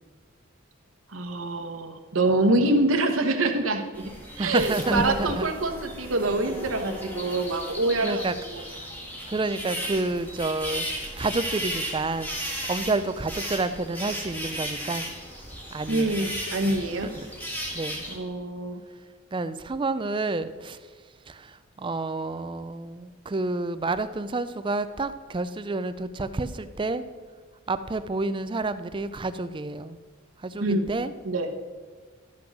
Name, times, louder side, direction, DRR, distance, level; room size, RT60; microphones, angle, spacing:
voice 1, 1.1-4.0 4.4-8.2 8.5-8.6 15.9-17.1 18.1-18.8 30.6-30.9 31.2-31.5, right 2 dB, 90° right, 5 dB, 1.1 m, -25 dB
sound 1, 3.9-18.2, equal, 10° left, 1.8 m, -35 dB
voice 2, 4.4-5.5 8.0-8.3 9.3-12.3 12.7-15.1 15.7-16.3 17.7-18.1 19.3-20.8 21.3-27.0 27.7-30.0 30.4-31.1, right 3 dB, 25° right, 12 dB, 0.4 m, -29 dB
12.5 x 6.1 x 6.1 m, 1.4 s
head